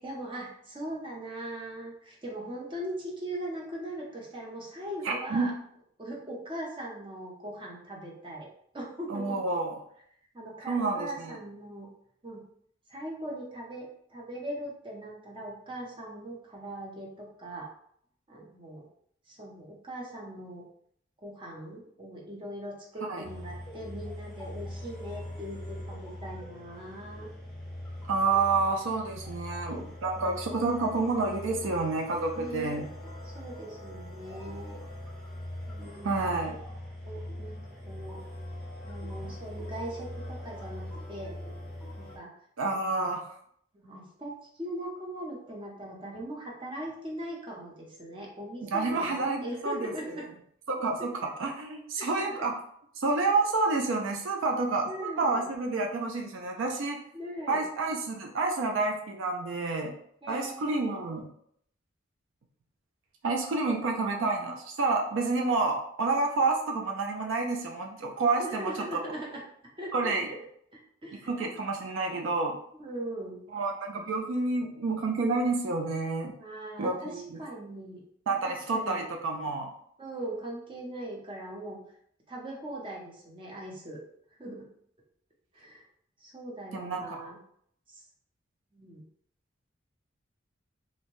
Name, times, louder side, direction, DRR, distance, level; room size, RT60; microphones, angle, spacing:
voice 1, 0.0-5.5 6.0-8.5 8.7-9.4 10.3-11.9 12.2-12.4 12.9-17.7 18.3-18.9 19.3-20.7 21.2-27.3 30.2-30.4 32.3-32.8 33.2-34.8 35.7-36.6 37.0-38.2 38.8-41.3 42.0-42.3 42.7-43.1 43.7-50.3 52.0-52.4 54.9-55.4 57.1-57.6 60.2-60.8 63.4-64.1 68.4-69.4 69.8-70.1 70.7-71.3 72.7-73.4 76.4-78.0 78.4-79.0 80.0-81.8 82.3-84.0 84.4-84.7 85.5-85.8 86.2-87.4 87.9-88.0 88.7-89.0, right 1 dB, 25° right, -2 dB, 0.6 m, -40 dB
voice 2, 5.0-5.5 9.1-9.8 10.7-11.3 23.1-23.2 28.1-32.9 36.0-36.6 39.2-39.3 42.6-43.2 48.6-49.9 50.7-52.5 53.0-57.0 57.5-59.9 60.3-61.3 63.2-68.7 69.9-70.3 71.3-72.6 73.5-76.3 76.8-77.4 78.3-79.7 86.7-87.2, right 3 dB, 90° right, 2 dB, 0.4 m, -29 dB
sound 1, 23.2-42.2, left 1 dB, 5° left, 0.8 m, -41 dB
2.6 x 2.1 x 3.0 m, 0.66 s
head